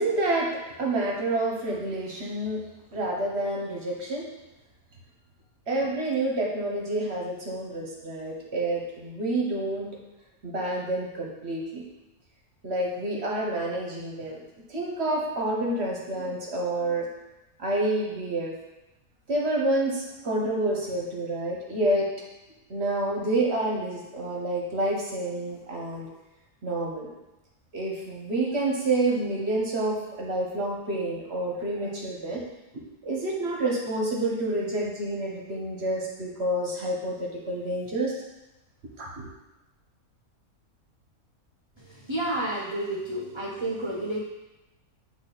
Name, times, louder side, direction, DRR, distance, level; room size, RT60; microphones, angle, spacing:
voice 1, 0.0-2.6 2.9-4.3 5.7-9.9 10.4-11.8 12.6-14.4 14.7-17.1 17.6-18.5 19.3-22.1 22.7-26.1 26.6-27.1 27.7-32.4 32.7-38.1 39.0-39.3, right 2 dB, 50° right, -2 dB, 1.3 m, -28 dB
voice 2, 41.9-44.2, right 1 dB, 30° right, -5 dB, 0.6 m, -30 dB
8.1 x 3.5 x 4.0 m, 0.99 s
omnidirectional pair, 1.5 m